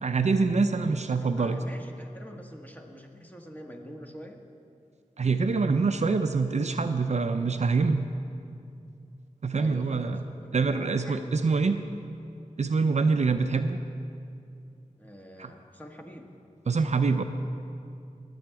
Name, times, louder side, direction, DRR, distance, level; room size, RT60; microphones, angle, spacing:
voice 1, 0.0-1.6 5.2-8.1 9.4-10.2 10.5-11.8 12.6-13.8 15.4-15.5 16.7-17.2, right 4 dB, 60° right, 8 dB, 0.5 m, -25 dB
voice 2, 0.8-4.4 9.5-11.9 15.0-16.3, equal, 10° left, 2 dB, 1.4 m, -45 dB
20.0 x 7.9 x 4.7 m, 2.6 s
wide cardioid pair, 60°, 14 cm